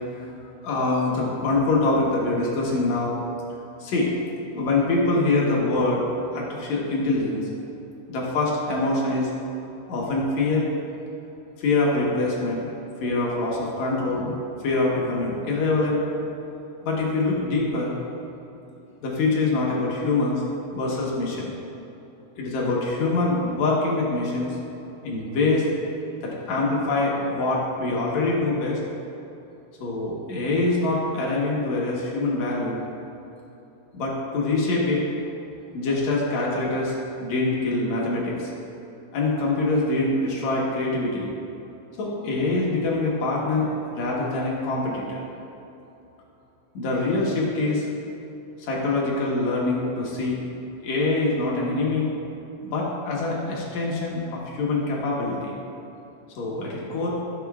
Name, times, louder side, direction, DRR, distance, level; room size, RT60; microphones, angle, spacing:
voice 1, 0.6-3.2 3.8-6.0 6.3-7.4 8.1-9.3 9.9-10.7 11.6-12.7 13.0-14.4 14.6-16.1 16.8-18.0 19.0-20.4 20.7-21.5 22.4-24.6 25.0-25.7 26.2-28.8 29.8-32.8 33.9-35.0 35.7-36.9 37.2-38.5 39.1-41.3 42.0-45.2 46.7-47.9 48.6-50.4 50.8-52.1 52.6-55.5 56.4-57.1, left 2 dB, 65° left, -4 dB, 1.9 m, -24 dB
15.5 x 6.9 x 2.4 m, 2.9 s
omnidirectional pair, 4.8 m